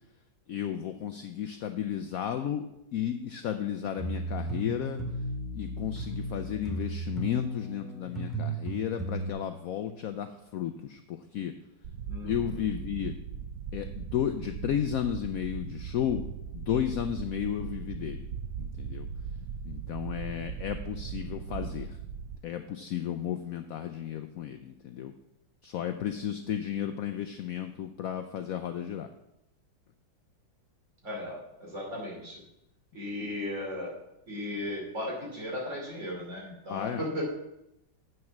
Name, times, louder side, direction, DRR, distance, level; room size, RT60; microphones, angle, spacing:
voice 1, 0.5-5.0 5.5-11.5 12.2-13.1 13.7-16.2 16.5-18.3 18.6-19.1 19.6-22.0 22.4-25.1 25.6-29.1 36.7-37.1, left 10 dB, 80° left, 8 dB, 0.7 m, -33 dB
sound 1, 4.0-9.3, right 2 dB, ahead, 2.0 m, -35 dB
sound 2, 11.8-22.4, right 6 dB, 75° right, 0.8 m, -38 dB
voice 2, 12.1-12.7 31.0-32.4 32.9-33.9 34.3-37.2, left 1 dB, 40° right, -3 dB, 3.2 m, -36 dB
8.3 x 6.3 x 5.9 m, 0.86 s
omnidirectional pair, 2.1 m